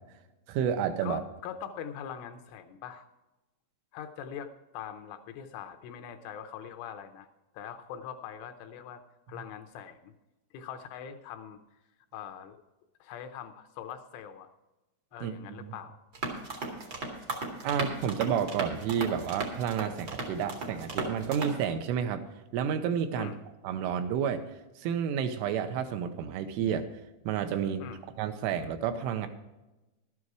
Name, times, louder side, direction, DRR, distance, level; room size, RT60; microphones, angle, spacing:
voice 1, 0.5-1.2 15.2-15.7 17.6-22.2 22.5-23.3 23.6-24.4 24.8-26.9 27.3-27.8 28.2-29.3, right 8 dB, 85° right, 7 dB, 3.1 m, -30 dB
voice 2, 1.0-3.1 3.9-7.3 7.5-9.0 9.3-10.1 10.5-11.6 12.1-12.6 13.0-14.5 15.1-16.0 23.2-23.4 27.8-28.0, left 8 dB, 80° left, 7 dB, 2.9 m, -42 dB
sound 1, 16.1-21.6, right 2 dB, 65° right, 1.2 m, -36 dB
12.5 x 9.7 x 4.7 m, 1.0 s
omnidirectional pair, 5.9 m